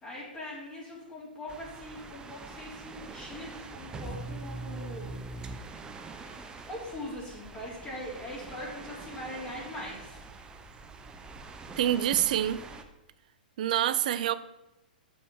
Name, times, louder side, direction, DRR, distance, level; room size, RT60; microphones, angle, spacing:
voice 1, 0.0-5.1 6.2-10.2, left 1 dB, 20° left, 3.4 m, -41 dB
sound 1, 1.5-12.8, right 3 dB, 15° right, 0.9 m, -43 dB
voice 2, 11.8-12.6 13.6-14.3, right 11 dB, 55° right, 0.6 m, -26 dB
7.1 x 6.9 x 6.7 m
figure-of-eight pair, 110°, 5 cm